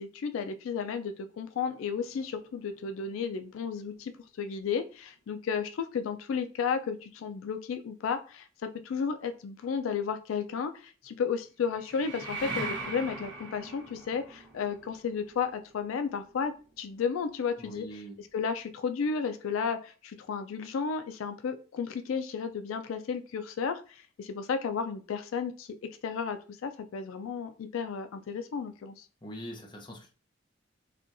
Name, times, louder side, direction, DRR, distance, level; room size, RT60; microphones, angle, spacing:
voice 1, 0.0-4.1 4.4-16.5 16.8-25.7 26.0-29.0, left 6 dB, 85° left, 9 dB, 0.3 m, -33 dB
sound 1, 1.5-4.2 11.6-17.3, right 3 dB, 55° right, 1.0 m, -42 dB
voice 2, 17.6-18.2 29.2-30.1, equal, 20° left, 1 dB, 0.6 m, -43 dB
4.2 x 2.3 x 2.5 m, 0.35 s
head